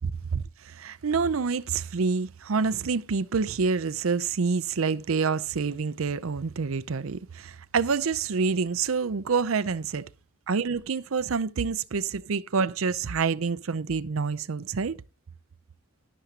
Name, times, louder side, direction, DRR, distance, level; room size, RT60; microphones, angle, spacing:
voice 1, 0.0-10.0 10.5-15.0, right 5 dB, 85° right, 0.6 m, -27 dB
12.5 x 11.5 x 2.9 m
head